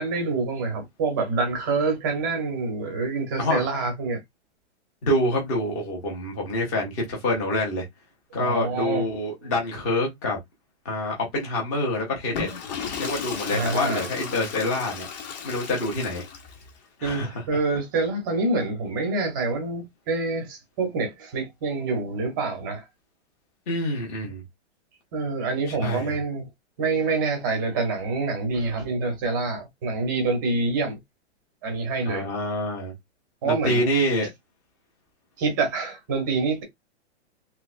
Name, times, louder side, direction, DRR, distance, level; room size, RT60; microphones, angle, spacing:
voice 1, 0.0-4.2 8.4-9.5 13.5-14.1 17.0-22.8 25.1-26.5 26.8-31.0 31.6-32.3 33.4-34.0 35.4-36.6, right 3 dB, 20° right, 0.7 m, -26 dB
voice 2, 5.0-7.9 8.3-10.4 10.8-12.5 13.0-15.1 15.4-16.2 17.0-17.6 23.7-24.4 25.7-26.2 32.1-32.9 33.4-34.3, left 1 dB, 15° left, 0.7 m, -26 dB
Water / Toilet flush, 12.2-16.7, left 6 dB, 40° left, 0.9 m, -35 dB
3.3 x 3.1 x 2.4 m
hypercardioid pair, 175°, 34 cm